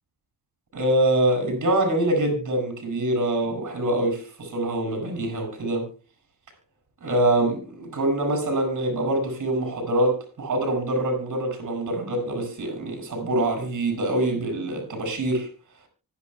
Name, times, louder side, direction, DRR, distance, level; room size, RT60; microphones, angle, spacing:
voice 1, 0.7-5.9 7.0-15.5, right 1 dB, 50° right, 7.9 m, -24 dB
25.0 x 11.0 x 2.3 m
cardioid pair, 120°, 39 cm